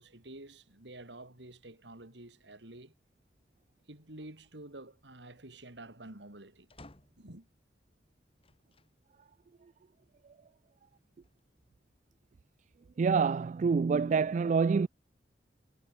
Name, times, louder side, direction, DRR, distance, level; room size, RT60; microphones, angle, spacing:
voice 1, 0.0-2.9 3.9-6.7 7.2-7.5, right 1 dB, 85° right, 3.8 m, -49 dB
sound 1, 6.7-7.4 8.4-9.0 9.6-9.7 10.9-11.7, left 2 dB, 35° left, 2.1 m, -57 dB
voice 2, 13.0-14.9, right 5 dB, 45° right, 0.3 m, -26 dB
head